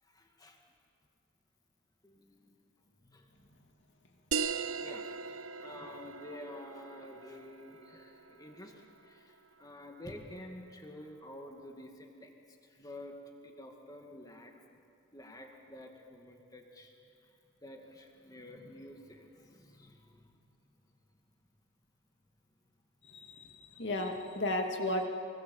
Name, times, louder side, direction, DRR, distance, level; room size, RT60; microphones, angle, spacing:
voice 1, 0.0-0.6 2.0-3.7 4.5-13.2 13.4-14.8 15.1-20.5, left 1 dB, 15° left, 2 dB, 2.3 m, -50 dB
sound 1, 4.3-9.4, right 5 dB, 70° right, 0.9 m, -39 dB
voice 2, 23.0-25.1, left 1 dB, 55° left, 3 dB, 2.6 m, -34 dB
25.0 x 24.0 x 7.3 m, 2.5 s
head